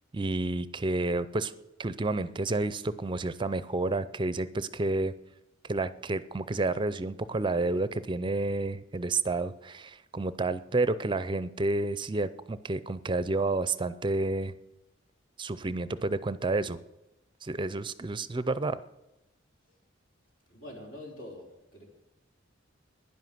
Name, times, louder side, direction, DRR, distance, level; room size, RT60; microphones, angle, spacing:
voice 1, 0.1-1.5 1.8-5.1 5.6-14.5 15.4-16.8 17.4-18.8, right 2 dB, 25° right, 15 dB, 0.5 m, -30 dB
voice 2, 20.5-21.9, left 1 dB, 70° left, 0 dB, 4.3 m, -45 dB
11.0 x 10.5 x 7.8 m, 0.96 s
head